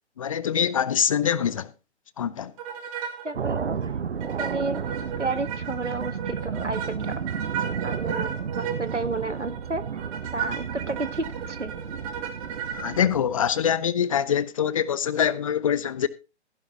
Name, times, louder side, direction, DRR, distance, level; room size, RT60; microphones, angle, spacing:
voice 1, 0.2-1.7 2.2-2.5 12.7-16.1, left 8 dB, 30° left, 0.6 m, -24 dB
sound 1, 2.6-3.3 3.6-3.7 4.2-13.1, right 8 dB, 30° right, 2.4 m, -35 dB
voice 2, 3.2-4.0 4.4-7.2 7.8-9.9 10.3-11.7, right 3 dB, 85° right, 1.5 m, -32 dB
sound 2, 3.3-13.7, right 7 dB, 65° right, 0.9 m, -33 dB
15.5 x 10.5 x 2.9 m
figure-of-eight pair, 130°, 35 cm